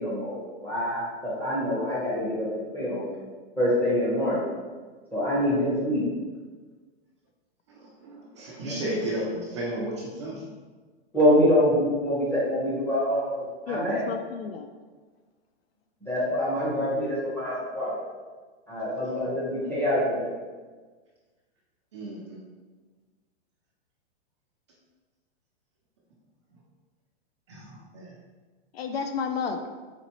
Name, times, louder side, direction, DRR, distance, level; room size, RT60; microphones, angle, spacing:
voice 1, 0.0-3.1 3.6-4.4 5.1-6.0 8.6-8.8 11.1-14.0 16.0-18.0 18.7-20.3, equal, 5° left, -8 dB, 0.8 m, -25 dB
voice 2, 7.7-10.4 21.9-22.4 27.5-28.1, right 1 dB, 25° right, -4 dB, 0.4 m, -34 dB
voice 3, 13.7-14.7 28.7-29.7, left 5 dB, 60° left, 6 dB, 0.4 m, -31 dB
4.2 x 3.9 x 2.9 m, 1.4 s
hypercardioid pair, 165°, 35 cm